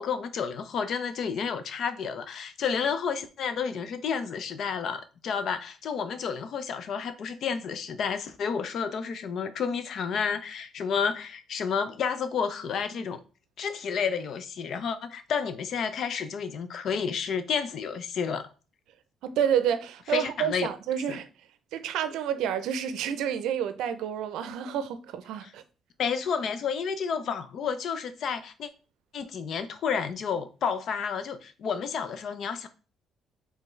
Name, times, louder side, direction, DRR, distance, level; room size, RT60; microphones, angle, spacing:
voice 1, 0.0-13.2 13.6-18.5 20.1-20.7 21.1-21.2 25.4-25.5 26.0-28.7 29.1-32.7, left 6 dB, 65° left, 0.6 m, -30 dB
voice 2, 19.2-21.3 21.7-25.6, right 9 dB, 85° right, 0.5 m, -29 dB
4.4 x 3.4 x 3.2 m
cardioid pair, 85°, 0 cm